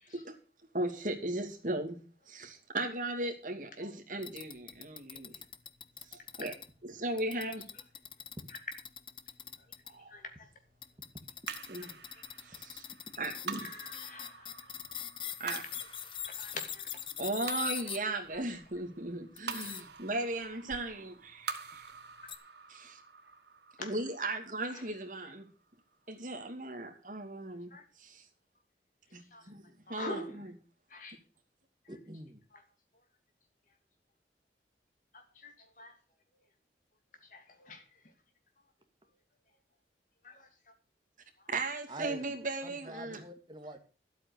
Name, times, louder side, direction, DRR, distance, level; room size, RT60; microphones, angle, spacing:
voice 1, 0.7-2.0 2.3-5.4 6.1-6.5 6.8-7.6 9.9-10.1 11.7-11.9 12.4-12.8 13.2-13.7 15.4-15.6 17.2-21.9 22.7-23.0 23.8-25.5 26.1-27.7 28.0-28.2 29.1-30.5 41.5-43.2, right 2 dB, 45° right, 2.6 m, -37 dB
sound 1, 4.2-6.7 7.2-9.9 10.8-18.0 18.3-18.8 19.4-19.8 20.7-20.9 21.7-21.9 22.3-22.4, left 9 dB, 30° left, 0.8 m, -42 dB
voice 2, 10.1-10.5 12.1-12.2 13.6-14.7 16.4-16.9 18.3-18.4 23.8-23.9 24.7-24.9 27.7-27.8 29.3-29.5 29.9-30.5 30.9-31.2 35.1-35.9 37.3-37.8 40.2-40.5, left 2 dB, 45° left, 2.7 m, -45 dB
sound 2, 11.5-26.0, right 6 dB, 75° right, 1.6 m, -47 dB
voice 3, 31.9-32.4 41.9-42.3 42.6-43.8, right 1 dB, 25° right, 1.9 m, -45 dB
12.5 x 8.5 x 6.5 m
head